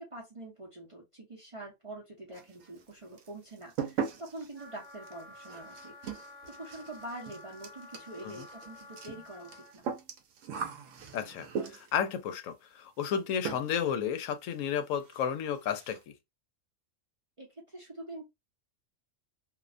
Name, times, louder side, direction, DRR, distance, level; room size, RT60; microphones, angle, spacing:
voice 1, 0.0-6.0 6.6-9.9 17.4-18.2, right 2 dB, 35° right, 0.5 m, -45 dB
sound 1, 2.3-2.9 3.2-12.1 13.0-13.2 13.4-13.9 14.2-14.3 14.7-14.8 15.1-15.2 15.5-16.0, right 6 dB, 80° right, 0.9 m, -40 dB
Wind instrument woodwind instrument, 4.5-9.7, left 2 dB, 55° left, 0.9 m, -51 dB
voice 2, 11.1-16.1, left 8 dB, 85° left, 1.0 m, -32 dB
2.5 x 2.1 x 2.4 m
omnidirectional pair, 1.3 m